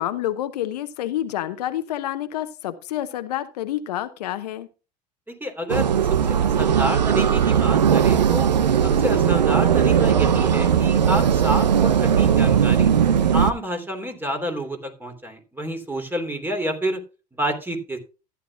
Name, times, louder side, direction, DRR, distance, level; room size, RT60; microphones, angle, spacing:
voice 1, 0.0-4.7, left 12 dB, 75° left, 11 dB, 0.9 m, -28 dB
voice 2, 5.3-5.9 6.2-8.5 8.8-12.9 13.3-17.0 17.3-18.0, right 1 dB, 10° right, 5 dB, 3.1 m, -29 dB
sound 1, 5.7-13.5, right 8 dB, 85° right, 0.7 m, -18 dB
14.0 x 10.0 x 2.4 m, 0.32 s
hypercardioid pair, 70°, 21 cm